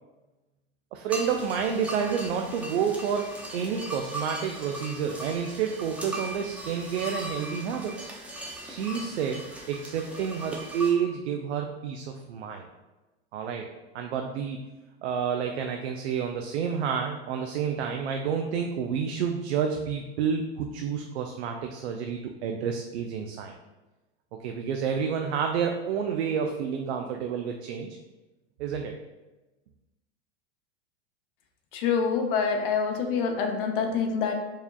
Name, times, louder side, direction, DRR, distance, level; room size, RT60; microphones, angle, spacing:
voice 1, 0.9-8.1 8.6-12.7 13.3-13.7 13.9-14.7 15.0-23.5 24.4-27.9 28.6-29.0, right 7 dB, 85° right, 3 dB, 0.5 m, -29 dB
sound 1, 1.1-10.9, right 1 dB, 5° right, 0.4 m, -39 dB
voice 2, 31.7-34.3, left 6 dB, 60° left, 3 dB, 0.6 m, -26 dB
4.7 x 2.8 x 2.3 m, 1.1 s
hypercardioid pair, 120°, 32 cm